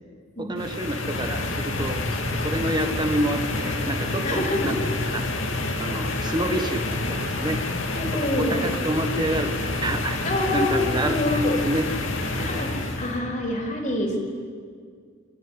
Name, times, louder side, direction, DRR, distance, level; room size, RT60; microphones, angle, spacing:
voice 1, 0.4-4.8 5.0-5.2 5.8-7.6 8.4-10.2 10.5-11.2 11.6-11.8, right 1 dB, 20° right, 5 dB, 1.4 m, -28 dB
sound 1, 0.6-13.2, left 2 dB, 70° left, 2.3 m, -28 dB
voice 2, 4.2-4.8 6.1-6.2 6.6-6.7 7.9-8.6 10.2-11.6 12.3-14.2, left 1 dB, 40° left, 1 dB, 4.0 m, -26 dB
27.5 x 13.5 x 9.9 m, 2.1 s
head